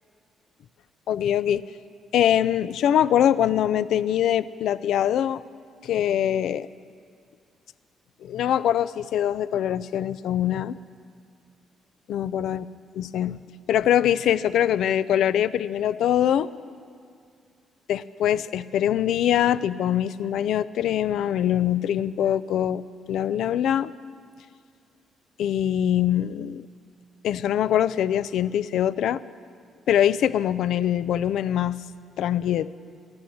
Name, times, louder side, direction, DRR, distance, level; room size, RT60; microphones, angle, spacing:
voice 1, 1.1-1.6 2.1-5.4 5.8-6.7 8.2-10.8 12.1-12.7 12.9-13.4 13.7-16.5 17.9-22.8 23.1-23.9 25.4-26.7 27.2-29.2 29.9-31.8 32.2-32.7, left 10 dB, 80° left, 16 dB, 0.4 m, -23 dB
13.0 x 11.5 x 8.7 m, 2.2 s
cardioid pair, 90°, 0 cm